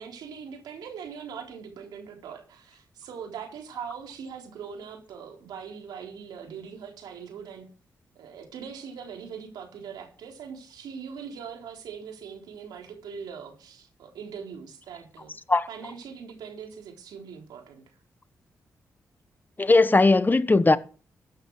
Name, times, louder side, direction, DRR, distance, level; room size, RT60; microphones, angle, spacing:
voice 1, 0.0-7.7 8.2-15.3 15.7-17.8, right 7 dB, 85° right, 3.9 m, -41 dB
voice 2, 19.6-20.8, left 3 dB, 25° left, 1.3 m, -18 dB
14.5 x 9.2 x 4.8 m
supercardioid pair, 45°, 7 cm